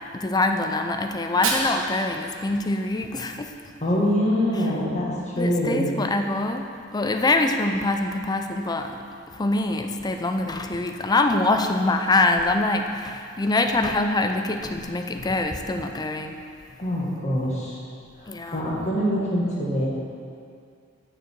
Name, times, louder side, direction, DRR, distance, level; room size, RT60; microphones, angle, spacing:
voice 1, 0.1-3.5 5.4-6.7 6.9-9.0 9.3-16.4 18.3-18.6, left 2 dB, 20° left, 5 dB, 0.4 m, -24 dB
Fire, 1.1-3.1, right 3 dB, 80° right, 1.2 m, -31 dB
voice 2, 3.8-5.9 16.8-17.8 18.2-19.9, equal, 35° left, -5 dB, 1.7 m, -24 dB
9.0 x 6.5 x 4.5 m, 2.4 s
head